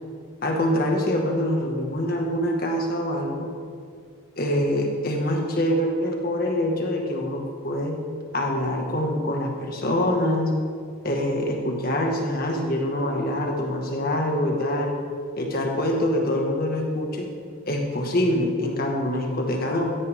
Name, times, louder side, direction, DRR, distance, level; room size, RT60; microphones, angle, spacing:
voice 1, 0.4-3.5 4.4-8.0 8.3-10.5 11.0-15.0 15.4-17.3 17.7-19.9, left 1 dB, 45° left, 1 dB, 1.9 m, -25 dB
16.0 x 13.5 x 3.8 m, 2.1 s
head